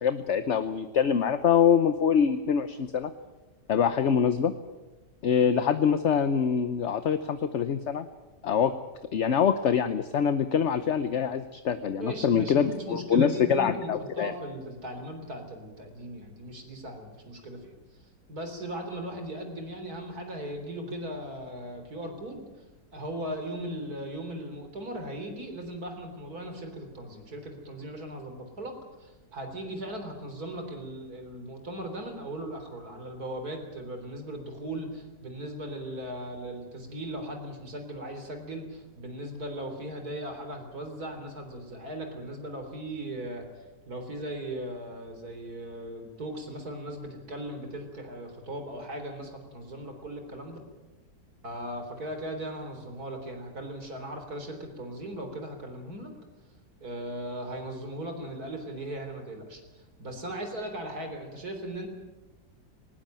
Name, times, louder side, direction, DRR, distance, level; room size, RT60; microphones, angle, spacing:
voice 1, 0.0-3.1 3.7-4.5 5.2-8.1 8.4-8.7 9.1-14.3, left 7 dB, 50° left, 11 dB, 1.0 m, -24 dB
voice 2, 12.0-17.7 18.3-22.5 22.9-28.7 29.0-50.6 51.4-56.1 56.8-59.6 60.0-61.9, right 1 dB, 60° right, 6 dB, 4.1 m, -38 dB
19.5 x 19.0 x 9.1 m, 1.1 s
omnidirectional pair, 1.8 m